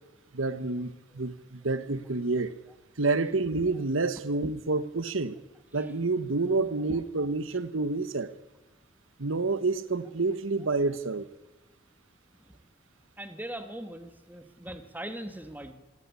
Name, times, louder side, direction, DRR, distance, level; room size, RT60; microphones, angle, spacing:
voice 1, 0.3-2.5 3.0-5.4 5.7-8.3 9.2-11.3, right 3 dB, 90° right, 1.3 m, -28 dB
voice 2, 13.2-15.7, right 1 dB, 10° right, 1.8 m, -40 dB
26.5 x 17.0 x 9.6 m
head